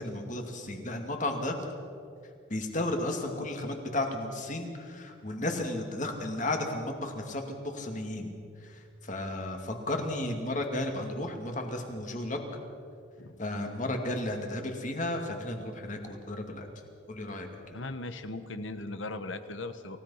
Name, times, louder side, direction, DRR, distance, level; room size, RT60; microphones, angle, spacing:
voice 1, 0.0-1.6 2.5-8.3 8.6-8.8 9.0-12.4 13.4-16.7 17.1-17.6, left 1 dB, 40° left, 3 dB, 2.4 m, -33 dB
voice 2, 17.7-20.0, left 2 dB, 75° left, 10 dB, 1.3 m, -38 dB
28.5 x 16.5 x 5.7 m, 2.5 s
head